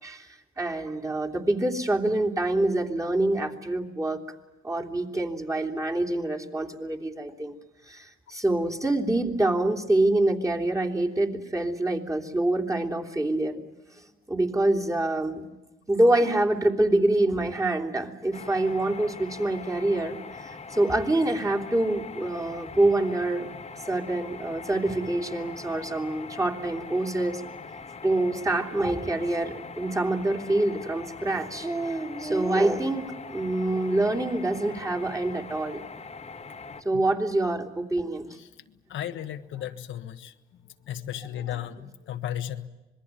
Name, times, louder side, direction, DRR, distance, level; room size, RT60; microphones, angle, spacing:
voice 1, 0.0-4.2 4.6-7.6 7.8-13.6 14.0-15.6 15.9-27.4 28.0-35.8 36.8-38.4, right 2 dB, 15° right, 0 dB, 3.1 m, -26 dB
sound 1, 18.3-36.8, left 4 dB, 30° left, 1.6 m, -42 dB
voice 2, 38.9-40.3 40.9-42.7, left 11 dB, 75° left, 7 dB, 1.4 m, -34 dB
26.0 x 21.5 x 9.1 m, 1.1 s
cardioid pair, 90°, 20 cm